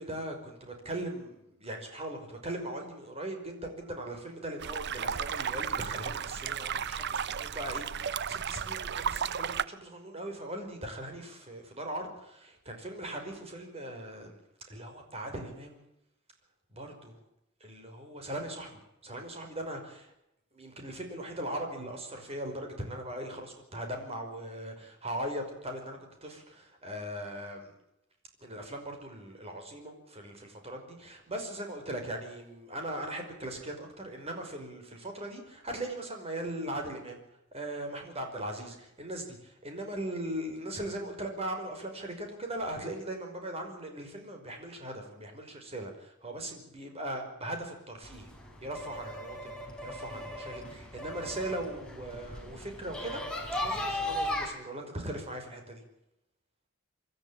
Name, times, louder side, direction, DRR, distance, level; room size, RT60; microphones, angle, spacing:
voice 1, 0.0-14.4 14.7-15.8 16.7-17.2 17.6-20.1 20.5-27.7 28.4-37.2 37.5-48.3 48.6-49.6 49.8-53.2 53.6-55.8, right 1 dB, 30° right, 4 dB, 5.3 m, -39 dB
sound 1, 4.6-9.6, right 7 dB, 55° right, 0.7 m, -34 dB
sound 2, 48.0-54.4, left 1 dB, 5° left, 4.8 m, -37 dB
26.0 x 13.5 x 8.7 m, 0.83 s
head